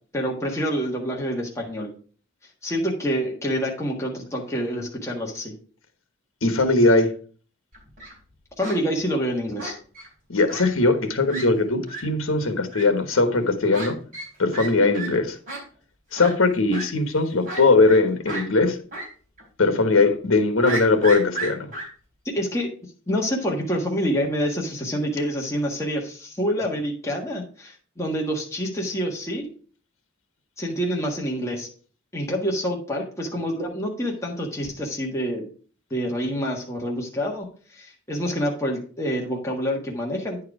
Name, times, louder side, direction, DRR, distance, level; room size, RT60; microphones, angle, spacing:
voice 1, 0.1-1.9 2.6-5.5 8.6-9.8 22.3-22.7 23.1-29.5 30.6-31.7 32.1-35.5 35.9-40.4, equal, 15° left, -2 dB, 1.5 m, -27 dB
voice 2, 6.4-7.1 10.3-14.0 14.4-15.4 16.1-18.8 19.6-21.7, left 3 dB, 75° left, 8 dB, 1.2 m, -20 dB
Fowl, 7.7-8.1 8.6-8.8 9.6-10.1 10.5-10.6 10.9-11.0 11.3-11.4 11.9-12.0 12.7-12.8 13.7-13.9 14.1-14.3 14.5-14.7 14.9-15.1 15.5-15.6 16.2-16.3 16.7-16.8 17.4-18.0 18.3-18.4 18.9-19.1 19.4-19.5 20.6-21.8, right 2 dB, 40° right, 3.9 m, -32 dB
9.6 x 4.7 x 4.8 m, 0.41 s
head